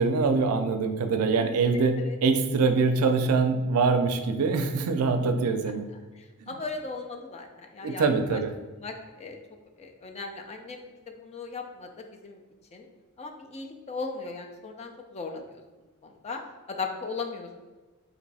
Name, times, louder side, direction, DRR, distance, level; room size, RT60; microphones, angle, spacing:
voice 1, 0.0-5.9 6.5-6.6 7.8-8.5, right 4 dB, 85° right, 7 dB, 0.4 m, -24 dB
voice 2, 6.2-8.4 8.8-9.4 9.8-12.4 12.7-12.9 13.2-15.6 16.0-16.4 16.7-17.7, left 4 dB, 30° left, 4 dB, 0.4 m, -37 dB
3.1 x 2.6 x 4.0 m, 1.2 s
head